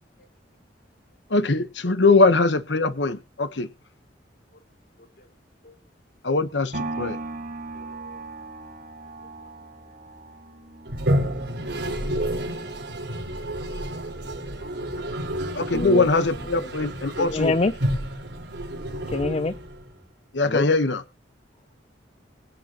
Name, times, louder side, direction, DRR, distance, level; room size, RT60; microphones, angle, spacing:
voice 1, 1.3-3.7 6.2-7.2 15.5-17.6 20.3-21.0, left 3 dB, 85° left, 1.1 m, -21 dB
voice 2, 5.0-5.3 5.6-5.8 7.7-8.2 9.4-9.5 14.6-15.2 15.6-15.9, left 2 dB, 55° left, 2.6 m, -53 dB
sound 1, 6.7-14.8 15.3-15.4, right 2 dB, 50° right, 5.2 m, -39 dB
Toilet flush, 10.9-20.0, equal, 70° right, 4.6 m, -30 dB
voice 3, 15.7-16.0 17.2-17.7 19.1-19.5 20.5-20.6, left 3 dB, 35° left, 0.6 m, -24 dB
23.5 x 9.0 x 3.0 m
head